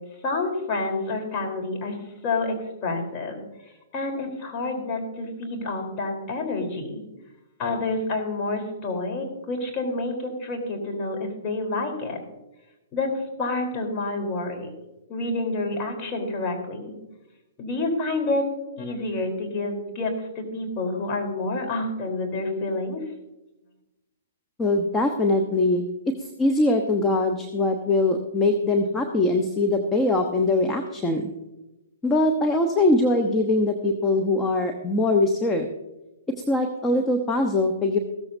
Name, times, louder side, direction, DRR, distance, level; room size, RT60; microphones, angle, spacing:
voice 1, 0.2-2.0 2.2-2.6 2.8-3.4 3.9-7.0 7.6-12.2 12.9-14.7 15.1-16.9 17.6-18.4 18.8-23.0, left 2 dB, 30° left, 1 dB, 3.8 m, -28 dB
voice 2, 24.6-31.3 32.0-35.7 36.3-38.0, left 2 dB, 15° left, 5 dB, 1.0 m, -22 dB
15.5 x 14.0 x 2.7 m, 0.98 s
hypercardioid pair, 120°, 0 cm